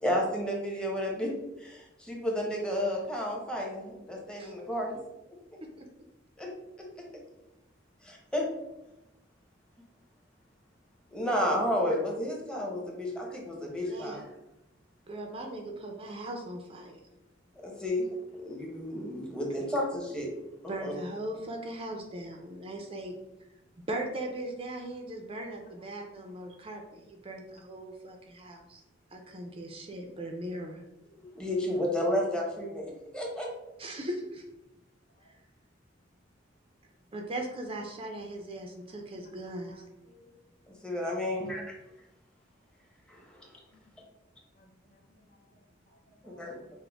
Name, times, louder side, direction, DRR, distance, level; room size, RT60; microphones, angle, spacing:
voice 1, 0.0-1.3 1.6-5.0 5.5-5.6 6.4-6.5 6.8-6.9 8.0-8.5 11.1-14.2 17.6-18.1 18.4-20.3 20.6-20.9 31.1-33.5 40.7-41.7 43.1-43.5 46.2-46.5, left 1 dB, 5° left, -2 dB, 0.8 m, -32 dB
voice 2, 13.6-14.2 15.1-17.0 20.7-23.2 23.9-28.8 29.1-30.8 33.8-34.4 35.3-35.4 37.1-39.8, right 1 dB, 30° right, 2 dB, 0.5 m, -39 dB
voice 3, 39.4-40.4 40.7-40.9 43.7-44.0 44.6-46.7, left 1 dB, 40° left, 2 dB, 0.6 m, -62 dB
6.0 x 2.1 x 3.4 m, 0.93 s
head